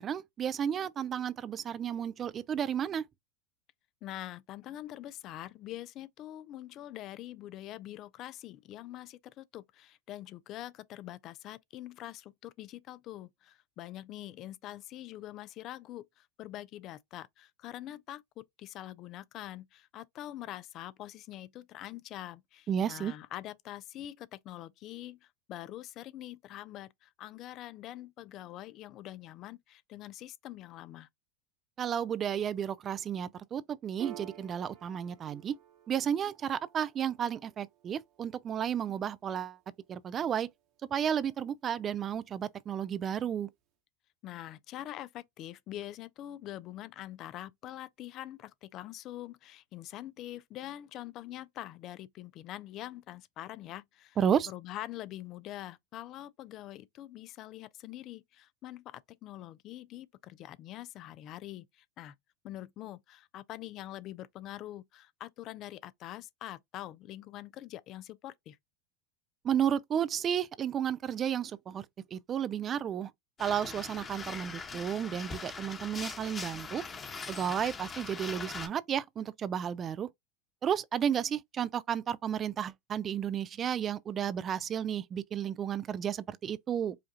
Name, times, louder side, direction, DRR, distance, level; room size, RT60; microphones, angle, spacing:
voice 1, 0.0-3.0 22.7-23.1 31.8-35.6 35.9-39.6 39.9-40.5 40.9-43.5 54.2-54.5 69.4-71.8 72.1-73.1 73.4-76.8 77.3-80.1 80.6-87.0, right 8 dB, 30° right, 0.3 m, -32 dB
voice 2, 4.0-31.1 44.2-54.2 54.5-62.1 62.4-68.6, left 13 dB, 45° left, 0.3 m, -44 dB
Piano, 34.0-40.9, right 12 dB, 55° right, 1.1 m, -53 dB
sound 1, 73.4-78.7, left 4 dB, 25° left, 1.1 m, -41 dB
5.0 x 2.3 x 2.7 m
hypercardioid pair, 100°, 0 cm